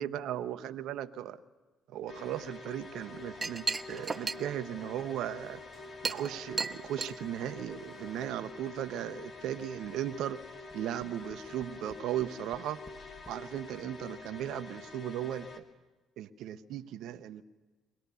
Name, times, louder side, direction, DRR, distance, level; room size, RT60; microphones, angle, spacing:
voice 1, 0.0-1.4 1.9-5.6 6.0-10.4 10.7-12.8 13.3-15.6 16.2-17.4, right 11 dB, 70° right, 11 dB, 0.8 m, -37 dB
sound 1, 2.1-15.6, left 3 dB, 55° left, 2.2 m, -47 dB
Chink clink, 2.9-8.3, right 4 dB, 30° right, 0.9 m, -38 dB
Tap, 10.4-13.5 14.3-14.4 14.7-14.8, left 2 dB, 15° left, 1.3 m, -57 dB
23.5 x 17.5 x 6.9 m, 1.3 s
hypercardioid pair, 55°, 0 cm